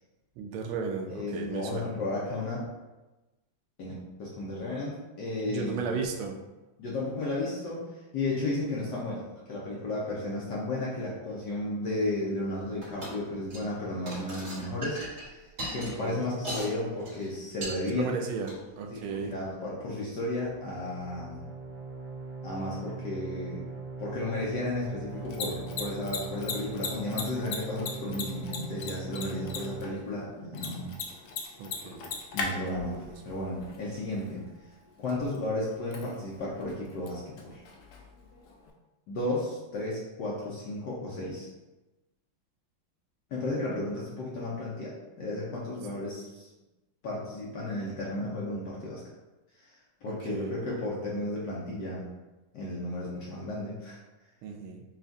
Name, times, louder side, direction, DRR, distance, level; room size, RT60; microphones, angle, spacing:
voice 1, 0.4-1.9 5.4-6.4 15.7-16.3 17.9-19.3 31.6-32.1 33.0-33.1 50.0-50.5 54.4-54.8, right 5 dB, 85° right, 3 dB, 1.4 m, -35 dB
voice 2, 1.1-2.6 3.8-3.9 4.2-5.8 6.8-7.8 8.1-15.4 15.7-18.2 18.9-21.5 22.4-23.7 24.0-30.9 32.3-33.0 33.2-34.4 35.0-37.6 39.1-41.5 43.3-46.5 47.0-49.0 49.6-49.7 50.0-52.1 52.5-54.0, left 2 dB, 65° left, -5 dB, 1.2 m, -33 dB
sound 1, 12.8-13.2 13.4-13.7 14.1-16.7 17.0-17.3 17.6-17.8 18.4-18.6, right 1 dB, 35° right, 1.7 m, -38 dB
sound 2, 20.4-29.8, right 3 dB, 65° right, 1.5 m, -40 dB
Mechanisms, 25.1-38.7, left 4 dB, 85° left, 0.8 m, -41 dB
5.7 x 2.4 x 2.6 m, 1.1 s
omnidirectional pair, 2.2 m